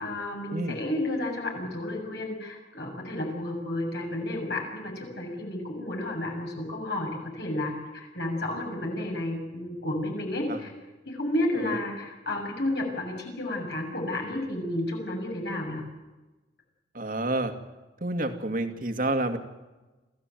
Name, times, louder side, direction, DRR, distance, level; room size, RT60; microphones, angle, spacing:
voice 1, 0.0-10.7 11.1-15.8, left 1 dB, 60° left, 1 dB, 7.2 m, -31 dB
voice 2, 16.9-17.5 18.0-19.4, right 2 dB, 45° right, 6 dB, 2.4 m, -29 dB
26.5 x 15.5 x 9.2 m, 1.1 s
head